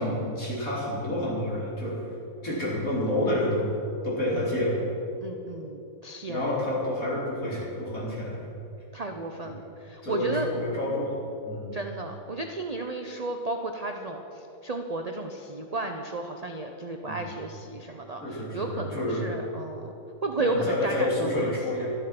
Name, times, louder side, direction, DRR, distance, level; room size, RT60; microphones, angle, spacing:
voice 1, 0.0-2.0 2.4-3.7 4.0-4.9 6.3-8.4 9.4-9.5 10.0-11.7 17.0-17.3 18.2-19.3 20.4-21.9, left 1 dB, 60° left, -6 dB, 4.0 m, -29 dB
voice 2, 5.2-6.5 8.9-10.5 11.7-19.9 20.2-21.5, right 2 dB, 45° right, 4 dB, 0.5 m, -33 dB
12.5 x 11.0 x 5.9 m, 2.9 s
omnidirectional pair, 1.6 m